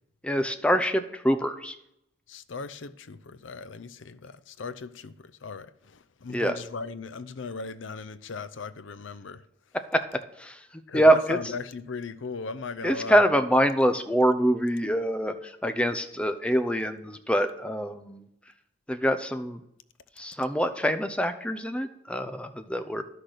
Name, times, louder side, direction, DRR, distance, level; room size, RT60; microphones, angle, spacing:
voice 1, 0.2-1.8 6.3-6.6 9.9-10.0 10.4-11.4 12.8-18.2 18.9-19.6 20.2-23.0, equal, 5° left, 0.6 m, -25 dB
voice 2, 2.3-9.4 10.9-13.2, left 4 dB, 80° left, 0.6 m, -38 dB
11.5 x 6.3 x 6.6 m
head